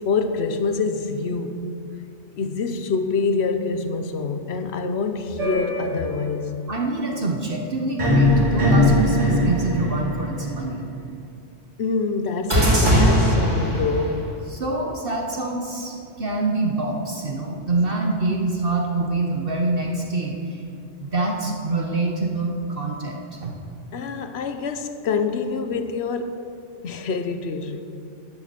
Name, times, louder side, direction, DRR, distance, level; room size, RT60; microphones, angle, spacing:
voice 1, 0.0-1.7 2.4-6.6 11.8-14.4 23.9-27.8, left 4 dB, 65° left, 1.1 m, -26 dB
sound 1, 5.4-6.4 8.0-10.7 12.5-14.2, left 1 dB, 80° right, 3.4 m, -20 dB
voice 2, 6.7-10.8 14.5-20.6 21.0-23.5, right 2 dB, 50° right, 1.2 m, -25 dB
11.5 x 7.8 x 6.8 m
omnidirectional pair, 1.2 m